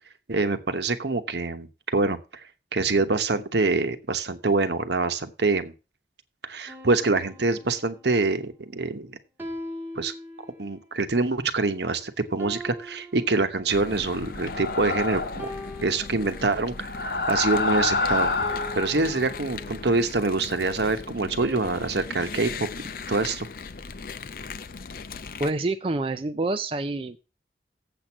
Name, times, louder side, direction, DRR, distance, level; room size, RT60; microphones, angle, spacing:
voice 1, 0.3-2.4 2.7-5.7 6.4-9.2 9.9-10.1 10.6-15.5 15.8-18.3 18.7-22.7 23.1-23.5, right 3 dB, 70° right, 9 dB, 1.1 m, -25 dB
sound 1, 6.7-8.3 9.4-10.9 12.4-14.1 15.4-16.9 18.4-20.1 21.4-22.4, equal, 10° right, 1.4 m, -41 dB
sound 2, 13.7-25.5, left 4 dB, 50° left, 0.5 m, -38 dB
sound 3, 14.3-15.5 16.8-18.9, left 3 dB, 70° left, 1.2 m, -27 dB
voice 2, 25.4-27.2, right 2 dB, 30° right, 8 dB, 0.4 m, -27 dB
7.9 x 6.2 x 7.2 m, 0.31 s
head